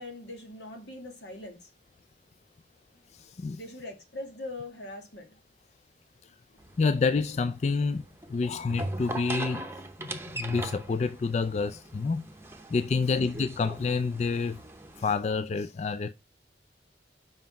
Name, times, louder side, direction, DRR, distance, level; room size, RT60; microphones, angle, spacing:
voice 1, 0.0-1.7 3.6-5.4 6.5-6.6, left 2 dB, 80° left, 2.3 m, -42 dB
voice 2, 3.1-3.6 6.2-6.3 6.8-9.7 10.0-12.2 12.7-14.6 15.0-16.1, left 4 dB, 40° left, 0.3 m, -28 dB
sound 1, 6.6-15.1, right 2 dB, 15° right, 0.8 m, -40 dB
5.7 x 5.2 x 5.7 m
head